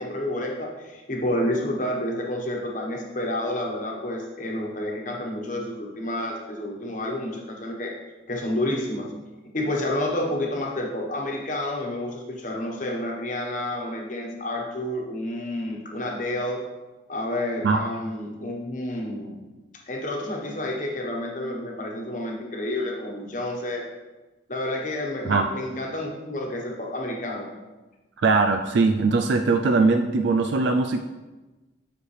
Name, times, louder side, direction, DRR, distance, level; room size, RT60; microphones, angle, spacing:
voice 1, 0.0-7.9 8.3-9.1 9.5-16.6 17.1-19.4 19.9-23.8 24.5-27.5, left 1 dB, 40° left, 0 dB, 1.2 m, -29 dB
voice 2, 28.2-31.0, right 3 dB, 65° right, 6 dB, 0.4 m, -21 dB
8.0 x 6.3 x 3.3 m, 1.2 s
head